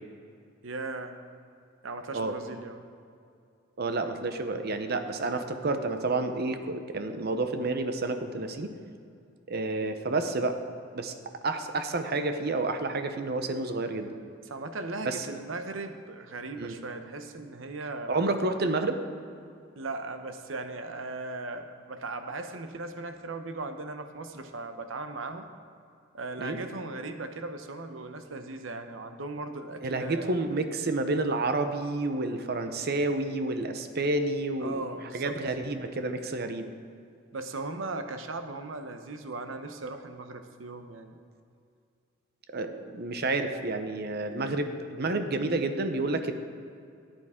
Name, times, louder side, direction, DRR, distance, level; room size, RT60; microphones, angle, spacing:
voice 1, 0.6-1.2 1.8-2.8 14.5-18.2 19.8-25.5 26.1-30.4 34.6-35.4 37.3-41.2, right 3 dB, 90° right, 7 dB, 0.8 m, -38 dB
voice 2, 3.8-8.7 9.5-10.6 10.9-11.1 11.4-14.1 15.0-15.3 16.6-16.8 18.1-19.0 26.4-26.6 29.8-34.8 35.1-36.7 42.5-46.3, right 2 dB, 55° right, 8 dB, 0.8 m, -29 dB
13.5 x 9.0 x 3.7 m, 2.5 s
head